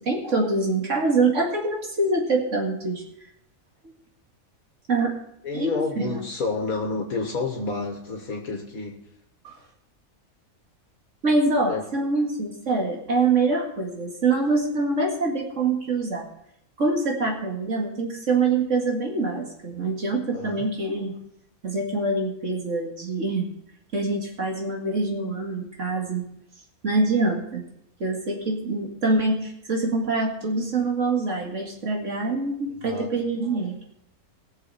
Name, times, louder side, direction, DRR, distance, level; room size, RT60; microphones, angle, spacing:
voice 1, 0.1-3.0 4.9-5.1 5.5-6.2 9.4-9.5 11.2-16.3 16.8-21.1 21.6-23.5 23.9-26.2 26.8-27.6 28.0-33.8, right 3 dB, 60° right, 0 dB, 2.4 m, -25 dB
voice 2, 5.4-9.0 11.7-11.8 20.3-20.5 32.8-33.1, left 3 dB, 75° left, 1 dB, 2.0 m, -29 dB
19.5 x 7.0 x 4.2 m, 0.76 s
omnidirectional pair, 1.5 m